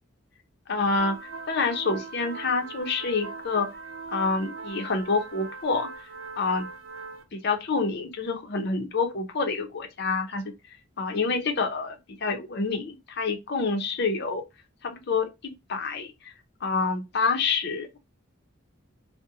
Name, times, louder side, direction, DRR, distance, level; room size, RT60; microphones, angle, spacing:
voice 1, 0.7-3.7 4.1-5.9 6.4-6.7 7.3-10.5 11.0-14.4 14.8-16.1 16.6-18.0, left 4 dB, 55° left, 0.6 m, -27 dB
sound 1, 1.0-7.2, right 4 dB, 80° right, 0.7 m, -40 dB
2.6 x 2.1 x 2.6 m
head